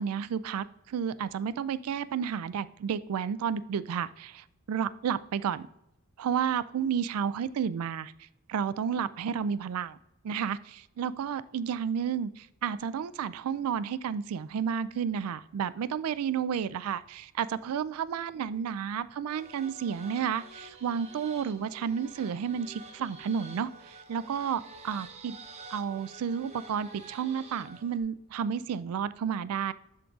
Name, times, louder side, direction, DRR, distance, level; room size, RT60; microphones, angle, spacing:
voice 1, 0.0-5.7 6.2-8.1 8.5-10.0 10.2-25.4 25.7-29.7, right 7 dB, 85° right, 0.3 m, -31 dB
sound 1, 19.3-28.0, right 3 dB, 30° right, 0.7 m, -49 dB
11.5 x 3.8 x 2.4 m
head